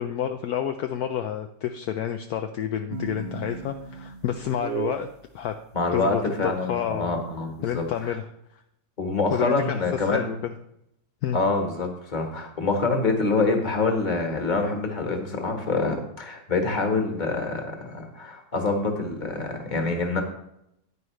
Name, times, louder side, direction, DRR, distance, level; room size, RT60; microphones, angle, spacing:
voice 1, 0.0-5.1 5.3-5.5 5.9-7.2 7.6-8.3 9.3-9.8 10.0-10.4 11.2-11.4, left 9 dB, 70° left, 6 dB, 1.0 m, -29 dB
sound 1, 2.9-5.1, right 6 dB, 55° right, 0.8 m, -34 dB
voice 2, 5.7-7.8 9.0-10.3 11.3-20.2, left 3 dB, 30° left, 3 dB, 1.5 m, -26 dB
10.0 x 9.5 x 3.2 m, 0.78 s
omnidirectional pair, 1.8 m